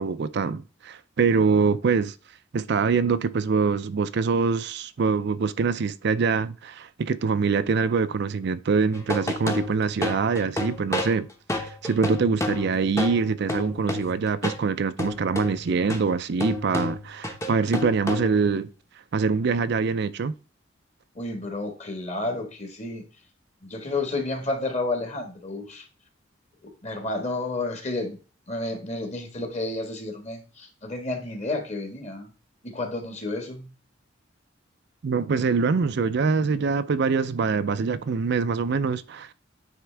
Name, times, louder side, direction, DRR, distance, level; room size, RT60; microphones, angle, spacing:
voice 1, 0.0-2.1 2.5-11.3 11.6-18.7 19.1-20.3 35.0-39.3, right 5 dB, 60° right, 0.4 m, -24 dB
sound 1, 8.9-14.7 15.0-18.6, left 1 dB, 15° left, 0.8 m, -31 dB
voice 2, 21.1-23.0 23.6-25.9 26.8-28.2 28.5-32.3 32.6-33.7, left 2 dB, 35° left, 1.6 m, -31 dB
9.2 x 3.6 x 3.4 m
head